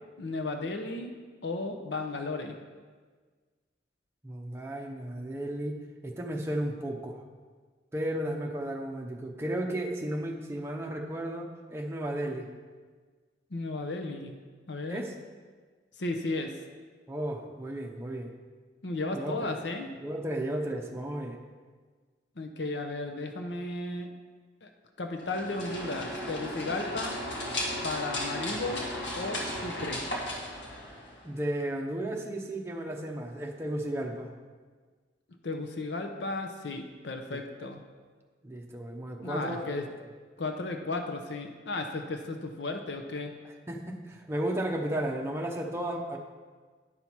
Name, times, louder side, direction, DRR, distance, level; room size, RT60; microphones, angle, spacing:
voice 1, 0.2-1.1 1.4-2.6 13.5-14.3 14.7-15.1 16.0-16.5 18.8-19.9 22.4-24.1 24.6-24.7 25.0-27.2 27.8-28.8 29.1-30.0 35.4-37.8 39.2-39.8 40.4-43.3, left 2 dB, 65° left, 5 dB, 0.7 m, -34 dB
voice 2, 4.2-7.2 7.9-12.5 14.9-15.1 17.1-18.3 19.1-19.5 20.0-21.4 31.2-34.3 37.3-37.4 38.4-39.9 43.7-46.2, right 1 dB, 15° right, 0 dB, 0.8 m, -34 dB
sound 1, 25.2-31.3, left 1 dB, 85° left, 1.6 m, -35 dB
9.6 x 5.6 x 4.6 m, 1.5 s
head